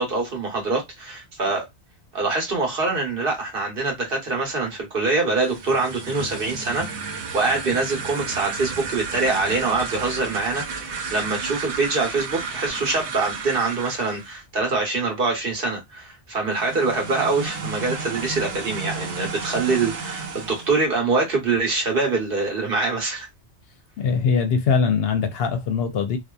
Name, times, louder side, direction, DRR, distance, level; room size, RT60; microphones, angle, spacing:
voice 1, 0.0-1.7 2.1-6.9 7.3-23.3, right 3 dB, 55° right, 1.1 m, -24 dB
sound 1, 5.4-14.4 16.5-20.8, right 5 dB, 80° right, 1.0 m, -33 dB
voice 2, 24.0-26.2, left 6 dB, 65° left, 0.7 m, -22 dB
2.7 x 2.3 x 2.2 m
omnidirectional pair, 1.1 m